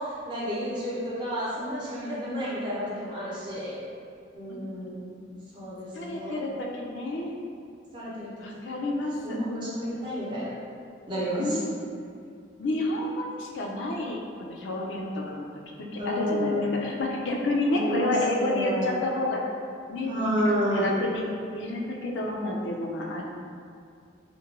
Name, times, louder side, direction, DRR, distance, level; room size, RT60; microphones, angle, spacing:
voice 1, 0.0-3.8 4.3-5.3 5.5-6.4 7.9-8.3 9.2-10.5 11.1-11.6 16.0-16.7 17.7-18.9 20.1-21.0, equal, 25° right, -9 dB, 0.6 m, -30 dB
voice 2, 5.9-7.3 8.4-9.4 11.4-11.7 12.6-19.4 19.9-21.2 21.5-23.2, left 2 dB, 75° left, -1 dB, 0.4 m, -30 dB
2.9 x 2.1 x 2.4 m, 2.3 s
head